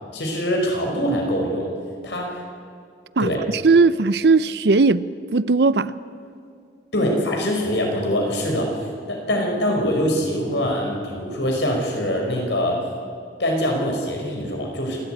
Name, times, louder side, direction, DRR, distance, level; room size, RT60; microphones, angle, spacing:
voice 1, 0.1-1.7 2.0-2.4 3.2-3.4 6.9-8.8 9.1-12.8 13.4-15.0, equal, 75° left, 5.2 m, -23 dB
voice 2, 3.2-5.9, right 4 dB, 65° right, 0.6 m, -18 dB
27.5 x 12.5 x 9.1 m
head